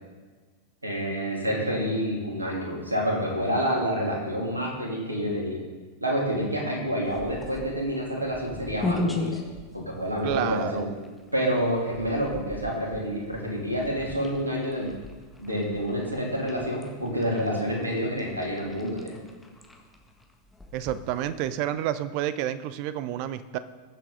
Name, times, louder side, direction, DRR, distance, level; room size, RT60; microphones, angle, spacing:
voice 1, 0.8-5.6 6.0-9.4 9.7-10.9 11.3-14.9 15.4-19.1, equal, 80° right, -1 dB, 2.9 m, -28 dB
sound 1, 7.0-21.5, left 2 dB, 5° left, 1.5 m, -39 dB
voice 2, 10.2-10.9 20.7-23.6, right 11 dB, 45° right, 14 dB, 0.7 m, -29 dB
21.0 x 7.5 x 3.8 m, 1.4 s
figure-of-eight pair, 90°, 0 cm